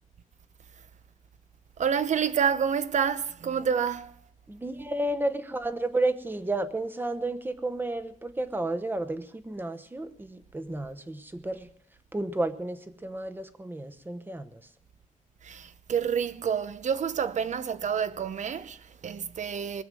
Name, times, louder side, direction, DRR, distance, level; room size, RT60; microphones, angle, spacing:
voice 1, 1.8-4.1 15.4-19.8, right 7 dB, 60° right, 0.8 m, -28 dB
voice 2, 4.5-11.7 12.1-14.6, right 2 dB, 15° right, 1.0 m, -32 dB
20.0 x 9.0 x 7.6 m
wide cardioid pair, 160°, 14 cm